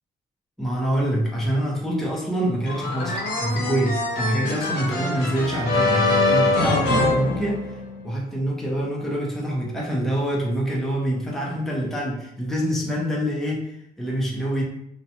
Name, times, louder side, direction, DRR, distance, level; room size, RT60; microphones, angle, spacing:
voice 1, 0.6-14.6, equal, ahead, -4 dB, 0.6 m, -26 dB
sound 1, 2.7-8.0, left 2 dB, 75° left, 0.9 m, -23 dB
2.8 x 2.1 x 2.7 m, 0.76 s
cardioid pair, 110°, 17 cm